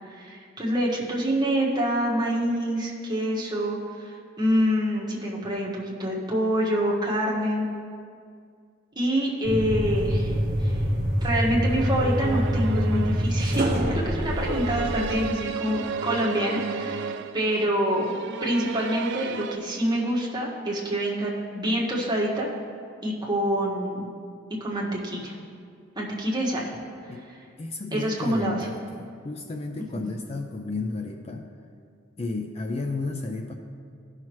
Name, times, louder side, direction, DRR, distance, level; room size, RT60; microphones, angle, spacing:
voice 1, 0.1-7.6 8.9-10.3 10.6-10.8 11.2-13.7 14.0-18.1 18.4-22.5 23.0-24.1 24.6-25.3 25.9-26.7 27.3-27.4 27.9-28.7 29.9-30.0, equal, 20° right, -4 dB, 1.5 m, -26 dB
sound 1, 9.4-15.3, equal, 40° right, 1.1 m, -26 dB
sound 2, 11.6-19.6, right 5 dB, 60° right, 0.4 m, -34 dB
voice 2, 27.6-31.4 32.2-33.5, left 3 dB, 30° left, 4 dB, 0.5 m, -32 dB
15.5 x 5.7 x 3.1 m, 2.2 s
head